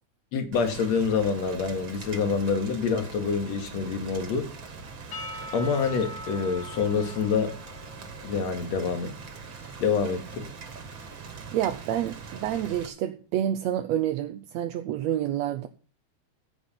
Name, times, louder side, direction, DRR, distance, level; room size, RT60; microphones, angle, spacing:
voice 1, 0.3-4.5 5.5-7.5 8.2-9.1 9.8-10.5, left 5 dB, 65° left, 3.1 m, -26 dB
Rain, 0.5-12.9, right 5 dB, 45° right, 2.5 m, -42 dB
Percussion / Church bell, 5.1-9.5, equal, 45° left, 3.3 m, -42 dB
voice 2, 11.5-15.7, right 11 dB, 75° right, 1.9 m, -28 dB
15.0 x 8.1 x 5.8 m
omnidirectional pair, 3.3 m